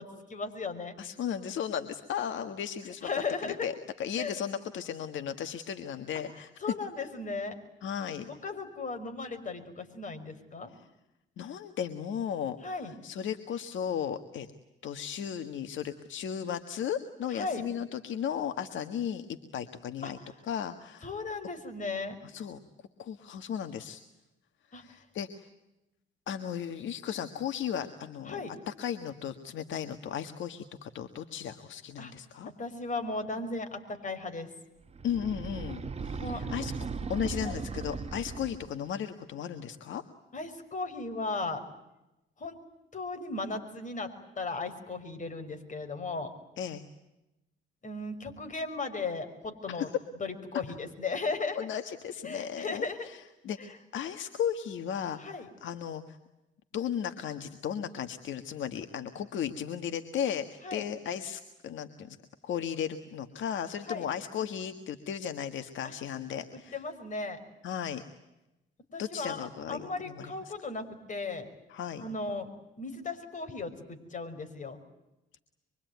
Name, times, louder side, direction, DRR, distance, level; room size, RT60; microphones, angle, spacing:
voice 1, 0.0-1.0 3.0-3.7 4.2-4.3 6.6-7.6 8.3-10.7 12.6-12.9 17.3-17.6 20.0-20.1 21.0-22.2 24.7-24.8 28.3-28.6 32.0-32.1 32.6-34.5 36.2-36.4 37.4-37.6 40.3-41.6 42.4-42.6 42.9-46.3 47.8-49.9 50.2-51.6 52.2-53.1 53.6-53.8 55.2-55.5 60.6-60.8 63.8-64.0 66.5-67.4 68.9-71.5 72.0-72.5 72.8-74.8, left 3 dB, 40° left, 7 dB, 5.6 m, -36 dB
voice 2, 1.0-3.7 4.0-6.5 7.8-8.3 11.4-12.6 12.8-14.5 14.8-19.3 19.5-20.2 20.5-21.1 22.2-22.6 23.0-24.0 24.7-25.5 26.3-28.4 28.7-32.5 35.0-36.7 37.1-40.0 46.6-46.8 49.7-49.9 51.5-52.8 53.4-55.2 55.6-56.2 56.7-62.2 62.4-66.8 67.6-68.0 69.0-70.5 71.7-72.0, left 8 dB, 75° left, 8 dB, 1.7 m, -35 dB
sound 1, 34.9-38.8, right 4 dB, 30° right, 1.2 m, -37 dB
26.0 x 24.0 x 9.4 m, 0.94 s
cardioid pair, 90°, 20 cm